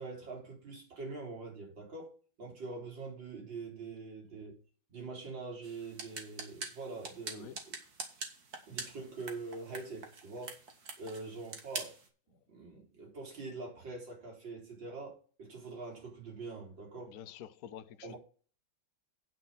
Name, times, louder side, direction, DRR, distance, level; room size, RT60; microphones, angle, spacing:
voice 1, 0.0-2.1 2.4-4.5 4.9-7.8 8.7-10.6 11.0-11.9 12.5-17.2 18.0-18.2, right 3 dB, 65° right, 4.6 m, -44 dB
sound 1, 5.6-12.1, right 4 dB, 50° right, 2.2 m, -45 dB
voice 2, 7.3-7.6 12.7-12.8 17.1-18.2, left 10 dB, 60° left, 1.0 m, -48 dB
9.3 x 6.1 x 5.6 m
omnidirectional pair, 2.2 m